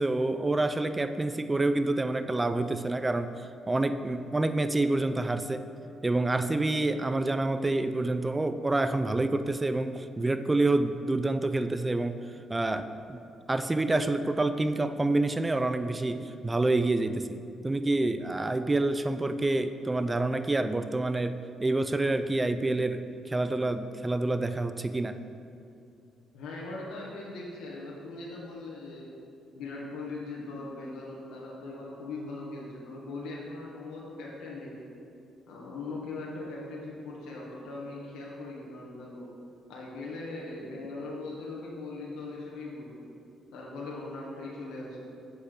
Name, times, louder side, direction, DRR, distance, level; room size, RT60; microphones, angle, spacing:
voice 1, 0.0-3.3 3.7-5.7 6.0-12.2 12.5-13.2 13.5-17.4 17.6-25.2, right 2 dB, 20° right, 10 dB, 0.3 m, -27 dB
voice 2, 26.3-29.1 29.5-34.8 35.5-39.3 39.7-43.0 43.5-45.1, left 2 dB, 90° left, -4 dB, 1.3 m, -40 dB
7.9 x 4.3 x 5.0 m, 2.5 s
cardioid pair, 90°, 0 cm